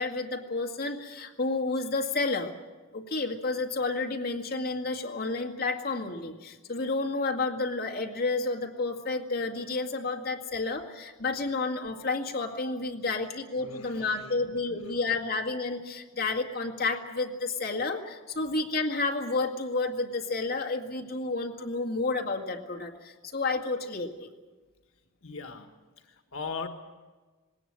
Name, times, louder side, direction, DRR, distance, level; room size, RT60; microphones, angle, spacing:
voice 1, 0.0-2.5 2.9-24.3, left 3 dB, 45° left, 2 dB, 2.1 m, -31 dB
voice 2, 13.6-14.5 25.2-25.7 26.1-26.7, left 4 dB, 80° left, 6 dB, 1.5 m, -39 dB
20.0 x 18.5 x 8.9 m, 1.3 s
head